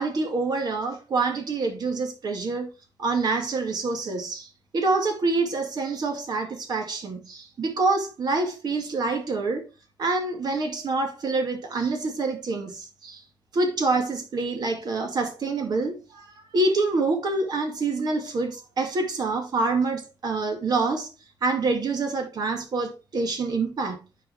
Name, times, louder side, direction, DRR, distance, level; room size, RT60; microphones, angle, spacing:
voice 1, 0.0-2.7 3.0-4.5 4.7-9.7 10.0-13.2 13.5-16.3 16.5-21.1 21.4-24.0, right 3 dB, 60° right, 2.3 m, -26 dB
9.8 x 5.1 x 3.6 m
wide cardioid pair, 125°, 8 cm